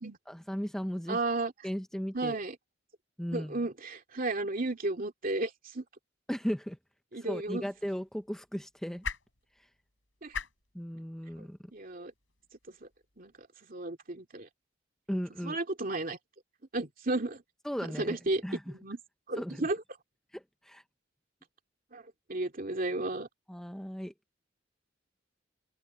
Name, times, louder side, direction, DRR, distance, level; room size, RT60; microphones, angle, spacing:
voice 1, 0.3-1.2 1.6-2.4 3.2-3.6 6.3-6.8 7.2-9.0 10.7-11.6 15.1-15.6 17.6-18.7 19.4-19.7 20.3-20.8 23.5-24.1, equal, 5° left, 0.7 m, -36 dB
voice 2, 1.1-1.5 2.1-2.6 3.3-5.8 7.1-7.6 10.2-10.3 11.7-12.1 12.8-12.9 13.2-14.5 15.4-16.2 16.7-17.4 18.0-19.0 19.3-19.8 21.9-22.0 22.3-23.3, right 2 dB, 45° right, 2.6 m, -33 dB
sound 1, 7.2-13.5, left 5 dB, 70° left, 6.7 m, -46 dB
open air
head